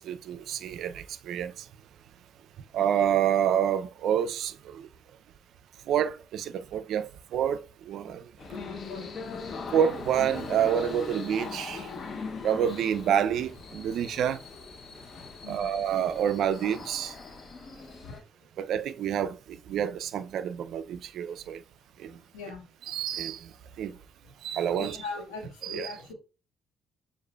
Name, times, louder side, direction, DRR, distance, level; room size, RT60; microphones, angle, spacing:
voice 1, 0.0-1.7 2.7-4.9 5.9-8.2 9.7-11.9 12.4-14.4 15.5-17.1 18.6-21.6 22.0-22.2 22.8-23.5 23.8-24.0 24.4-25.1 25.6-26.1, right 9 dB, 65° right, 0.3 m, -28 dB
sound 1, 8.4-18.2, left 4 dB, 50° left, 0.6 m, -40 dB
voice 2, 8.5-9.1 15.4-15.7 18.0-18.2 22.3-22.7 24.8-26.1, left 4 dB, 85° left, 1.4 m, -40 dB
6.4 x 2.4 x 2.2 m
hypercardioid pair, 55°, 0 cm